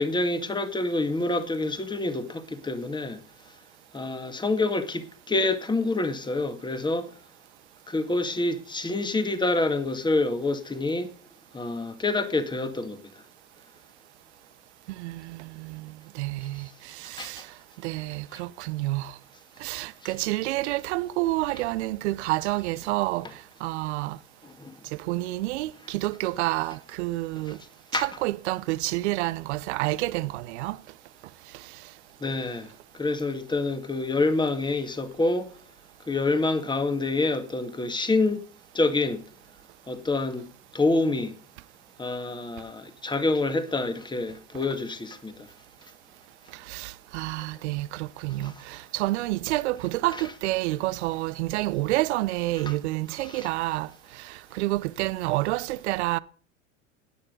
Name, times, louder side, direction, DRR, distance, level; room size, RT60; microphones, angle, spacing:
voice 1, 0.0-3.2 3.9-7.1 7.9-11.1 11.5-13.0 17.2-17.3 20.0-20.1 21.5-21.6 23.2-23.3 24.4-24.7 27.9-28.1 32.2-32.7 32.9-35.5 36.1-38.4 38.7-39.2 39.9-40.5 40.7-41.3 42.0-45.5 48.4-48.5 50.1-50.3 52.6-52.8 53.2-53.5, left 2 dB, 10° left, 2.0 m, -27 dB
voice 2, 14.9-17.5 17.8-19.2 19.6-24.2 24.9-27.6 27.9-30.8 31.5-31.7 46.5-56.2, right 19 dB, 60° right, 0.8 m, -29 dB
16.5 x 9.9 x 4.0 m
hypercardioid pair, 85°, 38 cm